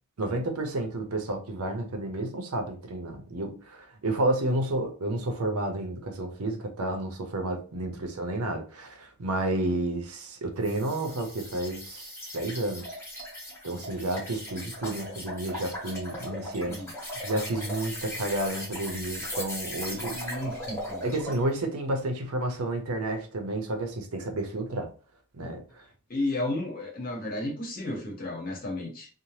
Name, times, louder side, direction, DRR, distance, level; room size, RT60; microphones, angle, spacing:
voice 1, 0.2-13.0 13.6-16.8 17.2-20.2 21.0-24.9 25.3-25.8, right 2 dB, 90° right, 5 dB, 0.6 m, -31 dB
sound 1, 10.6-21.4, left 1 dB, 10° left, 1.0 m, -38 dB
voice 2, 20.1-21.0 26.1-29.1, left 1 dB, 40° left, 0 dB, 0.9 m, -33 dB
2.7 x 2.1 x 3.1 m, 0.37 s
head